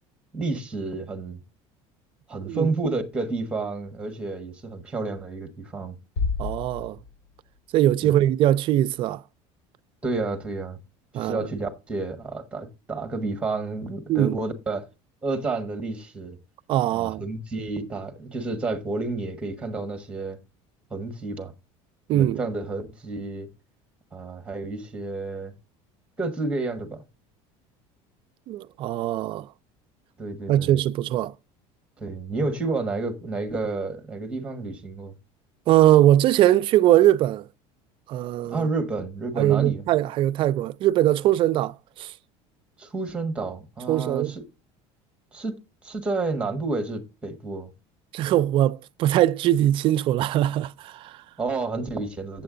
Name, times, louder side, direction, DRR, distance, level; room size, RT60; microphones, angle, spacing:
voice 1, 0.3-1.4 2.3-6.0 8.0-8.2 10.0-10.8 11.1-14.8 15.2-16.4 16.9-20.4 20.9-21.5 22.1-23.5 24.1-25.5 26.2-27.0 30.2-30.8 32.0-35.1 38.4-39.9 42.8-44.4 45.3-45.6 45.8-47.7 51.4-52.4, right 3 dB, 10° right, 1.3 m, -30 dB
sound 1, 6.2-7.6, left 4 dB, 85° left, 2.7 m, -30 dB
voice 2, 6.4-7.0 7.7-9.2 11.1-11.5 14.1-14.4 16.7-17.2 22.1-22.4 28.5-29.5 30.5-31.3 35.7-37.5 38.1-38.7 39.4-42.1 43.9-44.3 48.1-51.2, right 13 dB, 40° right, 0.4 m, -21 dB
7.7 x 7.5 x 3.8 m
cardioid pair, 160°, 14 cm